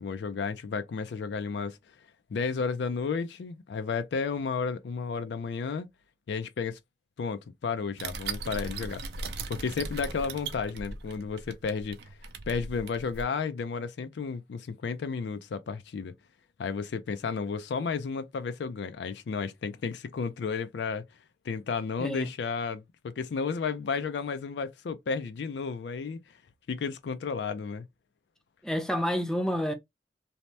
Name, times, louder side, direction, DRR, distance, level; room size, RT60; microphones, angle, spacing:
voice 1, 0.0-1.8 2.3-5.9 6.3-6.8 7.2-9.0 9.5-12.0 12.5-16.1 16.6-21.0 21.4-26.4 26.7-27.9, left 5 dB, 75° left, 0.4 m, -32 dB
sound 1, 8.0-13.2, right 4 dB, 60° right, 0.5 m, -38 dB
voice 2, 28.6-29.7, equal, 5° left, 0.4 m, -29 dB
2.8 x 2.0 x 3.2 m
head